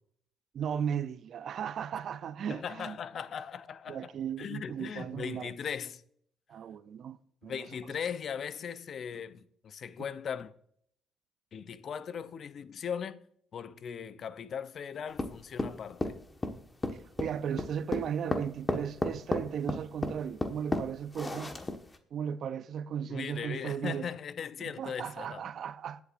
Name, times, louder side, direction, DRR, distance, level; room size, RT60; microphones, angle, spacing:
voice 1, 0.5-3.0 3.9-5.5 6.5-7.2 7.4-7.7 17.2-21.6 22.1-24.1 24.8-26.0, right 8 dB, 60° right, 0.5 m, -36 dB
voice 2, 2.5-4.1 4.4-6.0 7.4-10.5 11.5-13.2 13.5-16.2 23.1-25.5, left 7 dB, 55° left, 0.6 m, -39 dB
sound 1, 15.2-22.0, left 2 dB, 20° left, 1.4 m, -33 dB
23.0 x 8.4 x 2.5 m
supercardioid pair, 65°, 0 cm